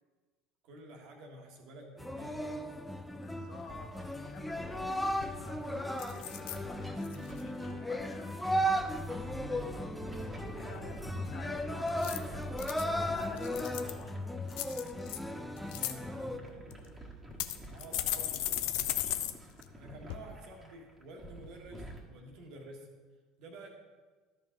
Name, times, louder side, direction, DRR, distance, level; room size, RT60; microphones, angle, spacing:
voice 1, 0.6-2.5 15.7-19.3 19.8-22.9 23.4-23.7, right 2 dB, 55° right, 2 dB, 1.6 m, -51 dB
sound 1, 2.0-16.4, equal, 5° left, 0.6 m, -36 dB
voice 2, 3.1-10.0 10.5-14.3, left 4 dB, 45° left, 3 dB, 1.3 m, -51 dB
sound 2, 3.5-22.0, equal, 20° right, 1.7 m, -49 dB
sound 3, 4.8-4.9 5.2-5.5 6.0-6.6 7.0-7.4 11.9-12.9 13.4-14.0 14.5-15.2 15.6-15.9 16.7-16.8 17.4-19.3 19.6-19.7 20.1-20.2, left 13 dB, 60° left, 0.5 m, -35 dB
13.0 x 5.2 x 3.9 m, 1.4 s
figure-of-eight pair, 65°, 0 cm